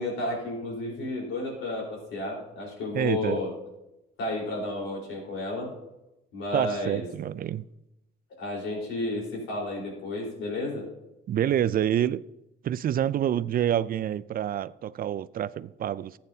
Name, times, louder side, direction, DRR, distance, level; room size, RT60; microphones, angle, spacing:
voice 1, 0.0-3.5 4.2-5.7 6.3-7.0 8.4-10.9, left 2 dB, 85° left, 4.2 m, -32 dB
voice 2, 2.9-3.4 6.5-7.6 11.3-12.2 12.6-16.2, right 10 dB, 50° right, 0.4 m, -27 dB
14.5 x 8.6 x 2.8 m
cardioid pair, 90°, 20 cm